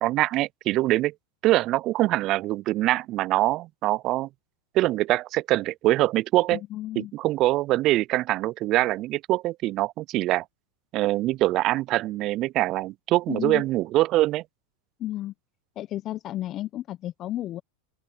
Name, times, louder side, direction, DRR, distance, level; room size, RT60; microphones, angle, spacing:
voice 1, 0.0-1.1 1.4-4.3 4.7-6.6 7.0-10.4 10.9-14.4, right 16 dB, 45° right, 0.3 m, -24 dB
voice 2, 6.5-7.1 13.3-13.6 15.0-15.3 15.8-17.6, left 14 dB, 40° left, 0.8 m, -32 dB
open air
hypercardioid pair, 100°, 0 cm